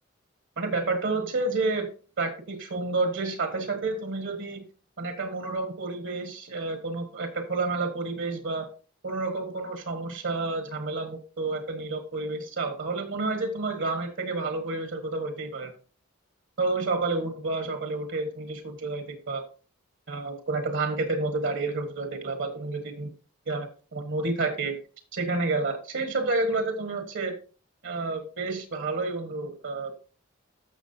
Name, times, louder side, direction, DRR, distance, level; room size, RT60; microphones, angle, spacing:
voice 1, 0.6-1.9 2.2-4.6 5.0-8.7 9.0-15.7 16.6-19.4 20.1-23.1 23.4-24.8 25.1-27.3 27.8-29.9, right 3 dB, 65° right, 7 dB, 1.6 m, -30 dB
13.5 x 6.2 x 2.8 m, 0.37 s
head